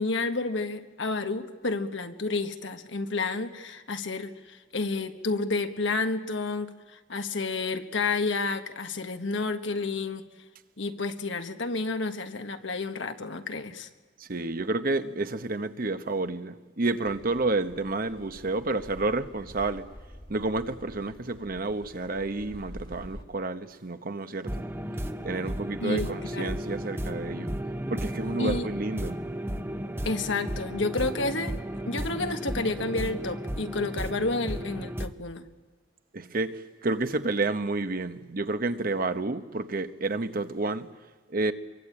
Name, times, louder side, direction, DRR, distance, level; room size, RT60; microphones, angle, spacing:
voice 1, 0.0-10.2 10.8-13.9 25.8-26.6 28.4-28.7 30.0-31.5 31.8-35.5, left 3 dB, 75° left, 1.5 m, -30 dB
voice 2, 14.2-19.9 20.3-24.6 25.2-27.5 27.9-29.2 36.1-40.9 41.3-41.5, right 2 dB, 50° right, 1.0 m, -30 dB
Car passing by / Accelerating revving vroom, 17.0-23.2, equal, 25° left, 1.9 m, -47 dB
sound 1, 24.4-35.1, equal, 15° right, 0.9 m, -34 dB
25.5 x 23.0 x 8.8 m
head